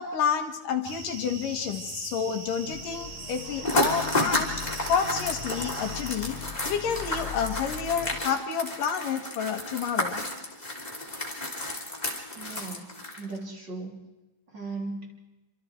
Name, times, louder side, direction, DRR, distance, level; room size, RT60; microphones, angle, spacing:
voice 1, 0.0-4.5 4.9-6.4 6.6-10.2, left 7 dB, 70° left, 5 dB, 3.4 m, -29 dB
sound 1, 0.8-6.2, right 4 dB, 60° right, 4.4 m, -41 dB
sound 2, 2.6-8.2, left 8 dB, 55° left, 2.9 m, -40 dB
sound 3, 3.6-13.4, left 1 dB, 10° left, 3.3 m, -32 dB
voice 2, 12.3-12.9 13.2-14.0 14.5-15.2, right 3 dB, 30° right, 0 dB, 3.9 m, -37 dB
28.5 x 26.0 x 4.7 m, 1.1 s
omnidirectional pair, 4.0 m